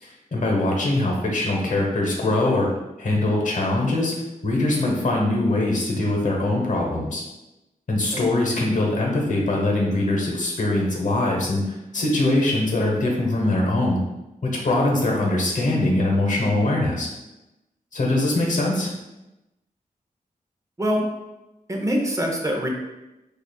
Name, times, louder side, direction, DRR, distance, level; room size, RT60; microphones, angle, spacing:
voice 1, 0.0-2.7 3.0-4.1 4.4-7.2 7.9-14.0 14.4-17.1 17.9-18.9, left 2 dB, 60° left, -1 dB, 0.9 m, -22 dB
voice 2, 21.7-22.7, equal, 20° right, 0 dB, 0.6 m, -24 dB
4.8 x 2.4 x 2.3 m, 0.97 s
wide cardioid pair, 80°, 15 cm